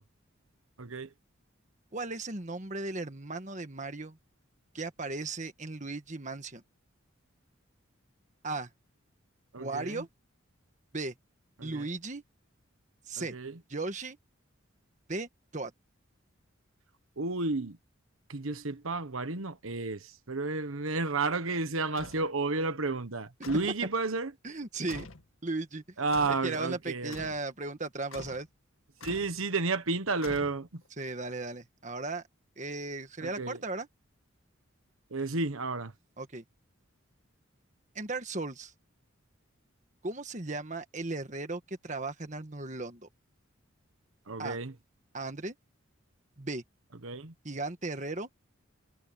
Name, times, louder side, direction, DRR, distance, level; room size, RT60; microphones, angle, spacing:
voice 1, 0.8-1.1 9.5-10.0 11.6-11.8 13.2-13.6 17.2-17.8 18.3-24.3 26.0-27.2 29.0-30.8 33.2-33.6 35.1-35.9 44.3-44.7 47.0-47.3, right 3 dB, 85° right, 1.3 m, -32 dB
voice 2, 1.9-4.2 4.7-6.6 8.4-8.7 9.6-10.1 10.9-11.1 11.6-12.2 13.1-13.3 13.7-14.2 15.1-15.7 24.4-25.1 25.4-25.8 26.3-28.5 31.0-32.2 32.6-33.9 36.2-36.4 37.9-38.7 40.0-43.1 44.4-44.6 45.1-45.5 46.4-46.6 47.4-48.3, right 3 dB, 35° right, 1.6 m, -36 dB
sound 1, 22.0-22.3 23.4-23.8 24.9-25.3 26.1-26.5 27.1-27.5 28.1-28.5 29.0-29.4 30.2-30.9, left 3 dB, 85° left, 1.9 m, -45 dB
head